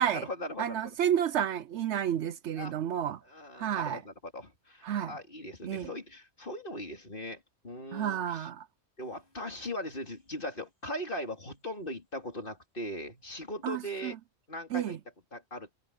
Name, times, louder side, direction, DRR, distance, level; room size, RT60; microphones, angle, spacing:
voice 1, 0.0-1.0 2.6-2.7 3.3-8.5 9.0-14.2 14.5-15.0 15.3-15.7, left 1 dB, 45° left, 3.6 m, -39 dB
voice 2, 0.6-3.2 3.6-4.0 4.8-5.2 5.6-5.9 7.9-8.7 13.6-14.1 14.7-15.0, right 10 dB, 70° right, 0.8 m, -31 dB
omnidirectional pair, 1.3 m